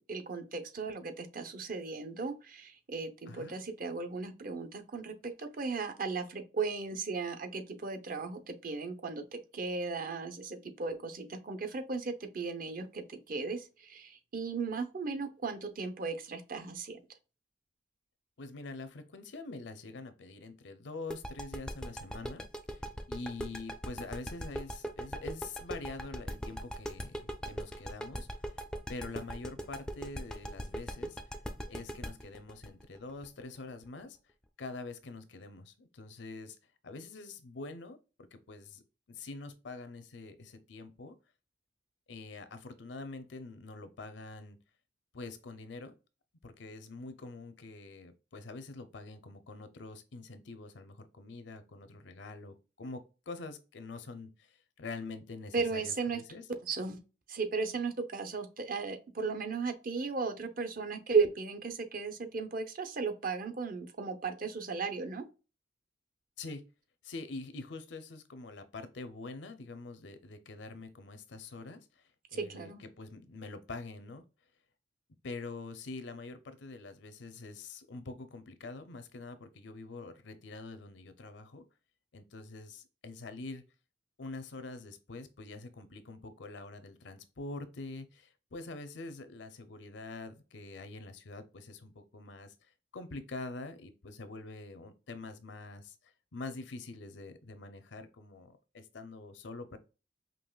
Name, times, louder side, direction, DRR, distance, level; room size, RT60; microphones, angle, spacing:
voice 1, 0.1-17.0 55.5-56.2 56.6-57.0 57.3-65.2 72.3-72.8, right 4 dB, 50° right, 0.7 m, -36 dB
voice 2, 18.4-22.4 22.7-27.2 27.4-28.3 28.9-31.2 31.7-34.2 34.6-36.6 36.8-38.8 39.1-41.1 42.1-44.6 45.1-45.9 46.4-56.4 66.4-66.6 67.0-74.2 75.2-81.6 82.1-83.6 84.2-92.5 92.9-95.9 96.3-99.8, left 3 dB, 70° left, 0.6 m, -45 dB
sound 1, 21.1-33.8, equal, 5° left, 0.4 m, -39 dB
5.3 x 2.9 x 2.3 m
head